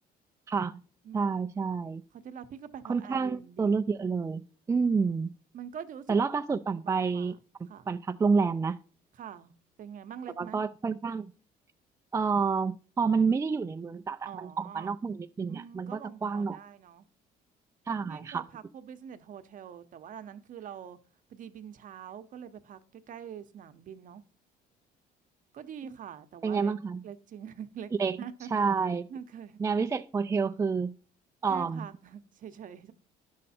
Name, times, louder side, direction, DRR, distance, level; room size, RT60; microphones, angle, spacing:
voice 1, 0.5-0.8 1.1-2.0 2.8-4.4 4.7-5.3 6.1-7.4 7.9-8.8 10.4-11.3 12.1-16.6 17.9-18.5 26.4-27.0 28.0-28.2 28.5-29.1 29.6-31.0 31.4-31.9, right 5 dB, 15° right, 0.3 m, -29 dB
voice 2, 2.1-3.8 5.5-6.1 6.8-7.3 7.7-7.9 9.2-9.5 9.8-10.6 14.2-14.9 15.5-17.1 18.1-21.0 21.3-24.2 25.5-26.7 27.0-28.5 29.1-29.6 31.5-32.9, right 8 dB, 50° right, 0.8 m, -44 dB
11.0 x 6.5 x 4.3 m
cardioid pair, 110°, 17 cm